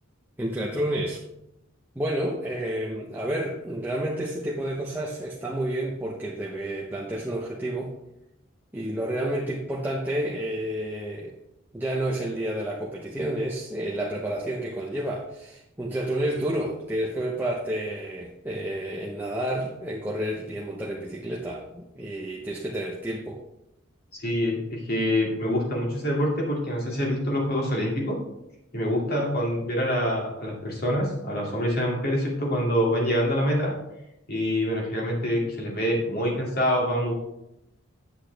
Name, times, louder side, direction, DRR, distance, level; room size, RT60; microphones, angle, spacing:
voice 1, 0.4-1.2 2.0-7.9 8.7-11.4 11.7-23.4, right 1 dB, 10° right, -3 dB, 0.8 m, -30 dB
voice 2, 24.1-28.2 28.7-33.7 34.3-37.1, equal, 45° left, -2 dB, 2.4 m, -26 dB
8.2 x 8.2 x 3.4 m, 0.84 s
head